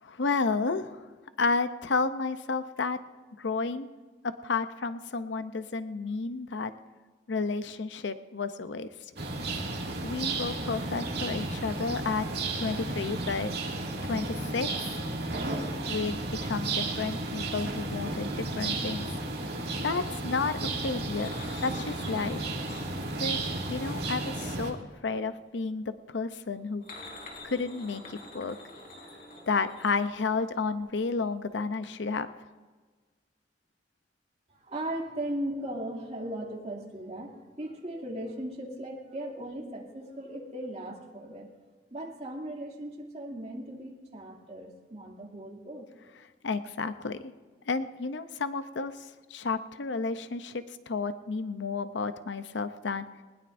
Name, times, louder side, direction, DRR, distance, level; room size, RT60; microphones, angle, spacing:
voice 1, 0.0-1.1 1.4-3.0 3.4-3.9 4.2-6.7 7.3-8.9 10.0-12.3 12.5-13.5 14.0-15.0 15.9-19.1 19.8-21.3 21.6-22.4 23.2-23.4 23.7-24.8 25.0-26.8 27.4-28.6 29.5-32.3 46.4-47.3 47.7-53.0, left 4 dB, 80° left, 11 dB, 0.7 m, -31 dB
sound 1, 9.2-24.7, right 2 dB, 65° right, 2.3 m, -33 dB
sound 2, 21.1-25.3 26.5-30.8 31.0-31.2 31.5-31.6, left 2 dB, 50° left, 3.5 m, -48 dB
voice 2, 34.5-41.5 41.9-45.9, right 1 dB, 40° right, -1 dB, 2.6 m, -38 dB
20.0 x 20.0 x 2.6 m, 1.4 s
head